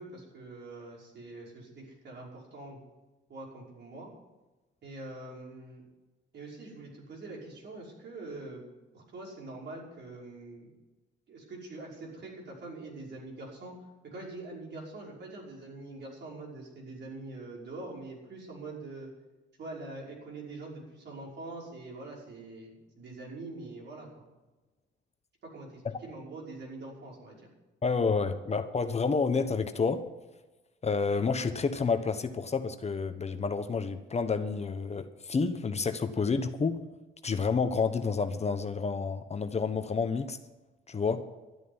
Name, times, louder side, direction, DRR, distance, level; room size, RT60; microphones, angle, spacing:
voice 1, 0.0-2.8 3.3-4.1 4.8-5.8 6.3-8.6 8.9-10.7 11.3-19.1 19.6-24.3 25.4-27.5, right 2 dB, 60° right, 5.6 m, -44 dB
voice 2, 27.8-30.0 30.8-36.8 37.2-40.4 40.9-41.3, left 4 dB, 35° left, 1.1 m, -29 dB
12.5 x 9.2 x 9.8 m
cardioid pair, 90°, 20 cm